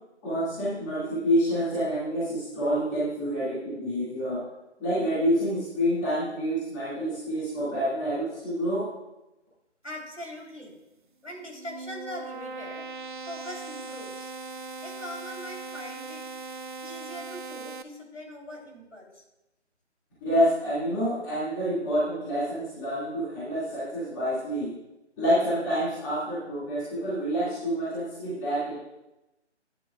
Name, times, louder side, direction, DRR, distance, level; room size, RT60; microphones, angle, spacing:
voice 1, 0.2-4.4 4.8-8.9 20.2-24.7 25.2-28.8, equal, 15° left, -11 dB, 2.3 m, -27 dB
voice 2, 9.8-10.7 11.2-12.9 13.3-14.3 14.8-16.2 16.8-19.2, equal, 90° left, -1 dB, 3.6 m, -41 dB
sound 1, 11.3-17.8, right 4 dB, 45° right, 0.4 m, -39 dB
11.5 x 9.6 x 2.4 m, 0.92 s
figure-of-eight pair, 155°, 35 cm